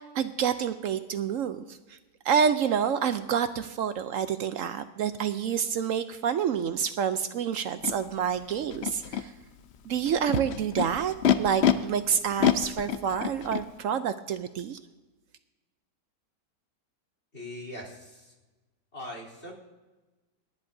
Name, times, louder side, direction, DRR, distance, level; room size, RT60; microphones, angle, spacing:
voice 1, 0.1-2.0 2.2-9.3 9.9-14.8, right 8 dB, 70° right, 11 dB, 0.8 m, -28 dB
Animal, 7.8-7.9 8.7-9.2 10.1-11.7 12.4-13.6, left 9 dB, 70° left, 0.6 m, -25 dB
voice 2, 17.3-18.3 18.9-19.5, left 1 dB, 40° left, -2 dB, 3.7 m, -41 dB
28.5 x 10.5 x 2.7 m, 1.2 s
omnidirectional pair, 1.8 m